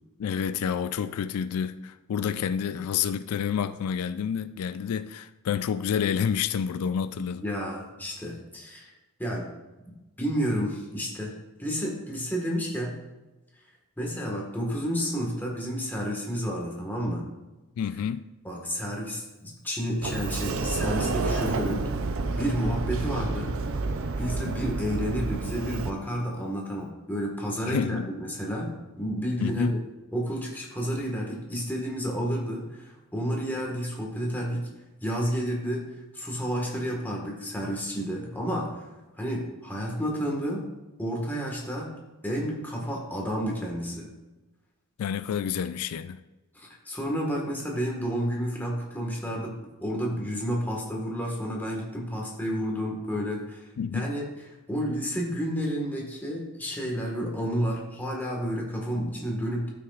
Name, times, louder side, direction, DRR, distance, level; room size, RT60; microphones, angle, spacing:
voice 1, 0.2-7.4 17.8-18.2 27.6-28.1 29.4-29.7 45.0-46.2 53.8-54.1, left 7 dB, 85° left, 0.3 m, -29 dB
voice 2, 7.4-8.9 9.2-9.5 10.2-11.3 11.6-13.0 14.0-17.2 18.4-21.9 22.4-23.6 24.2-29.8 30.1-34.7 35.0-35.9 36.1-38.9 39.2-40.7 41.0-41.9 42.2-44.1 46.5-53.7 53.9-54.3 54.7-59.7, equal, 10° left, 1.5 m, -30 dB
Sliding door, 20.0-25.9, right 3 dB, 60° right, 0.5 m, -29 dB
13.0 x 5.9 x 2.4 m
head